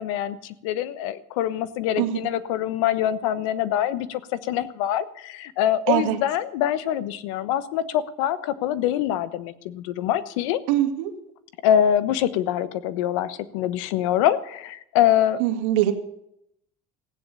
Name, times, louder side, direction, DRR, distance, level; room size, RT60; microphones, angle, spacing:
voice 1, 0.0-10.6 11.6-15.4, left 11 dB, 85° left, 15 dB, 1.1 m, -24 dB
voice 2, 5.9-6.2 10.7-11.1 15.4-15.9, right 13 dB, 85° right, 7 dB, 2.1 m, -22 dB
15.5 x 10.0 x 7.0 m, 0.75 s
supercardioid pair, 105°, 16 cm